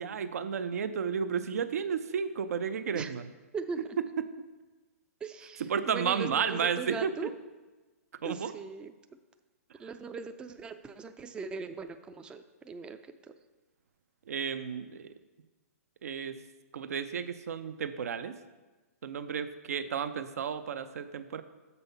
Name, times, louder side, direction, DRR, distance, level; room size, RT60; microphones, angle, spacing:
voice 1, 0.0-3.3 5.7-7.1 8.2-8.5 9.8-9.9 14.3-15.1 16.0-16.4 16.7-18.3 19.0-21.4, right 7 dB, 70° right, 11 dB, 0.6 m, -32 dB
voice 2, 5.2-7.3 8.2-8.9 9.8-13.0 13.3-13.4, right 4 dB, 10° right, 9 dB, 0.4 m, -40 dB
7.0 x 5.5 x 5.5 m, 1.2 s
hypercardioid pair, 135°, 8 cm